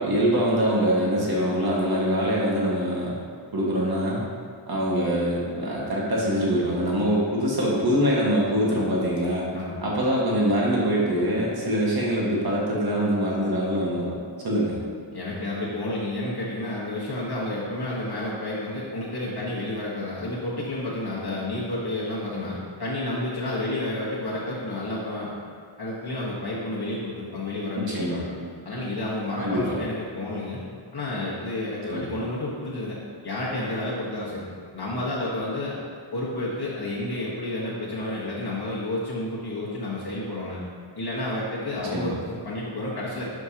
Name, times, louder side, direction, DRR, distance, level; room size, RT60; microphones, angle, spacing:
voice 1, 0.0-3.1 3.5-4.2 4.7-9.4 9.8-14.2 14.4-14.8 27.8-28.3 29.4-29.8 31.9-32.1 41.9-42.1, equal, 45° right, -5 dB, 1.7 m, -24 dB
voice 2, 9.5-9.8 15.1-25.3 25.8-30.6 30.9-33.0 33.2-34.4 34.7-35.8 36.1-40.6 40.9-43.3, left 1 dB, 50° left, -7 dB, 1.4 m, -30 dB
11.0 x 5.3 x 2.9 m, 2.1 s
wide cardioid pair, 130°, 50 cm